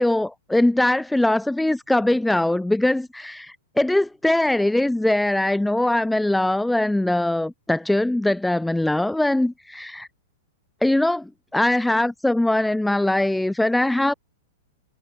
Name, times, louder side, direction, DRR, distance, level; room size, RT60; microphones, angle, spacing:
voice 1, 0.0-10.1 10.8-14.1, left 1 dB, 5° left, 2.0 m, -21 dB
figure-of-eight pair, 100°, 0 cm